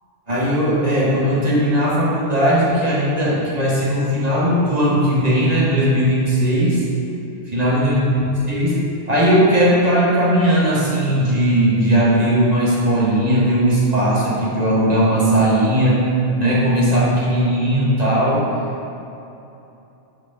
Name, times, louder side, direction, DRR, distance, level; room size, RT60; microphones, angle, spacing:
voice 1, 0.3-6.8 7.5-8.8 9.1-16.0 16.4-18.4, equal, 35° right, -7 dB, 1.4 m, -17 dB
9.1 x 4.6 x 3.9 m, 2.9 s
omnidirectional pair, 1.2 m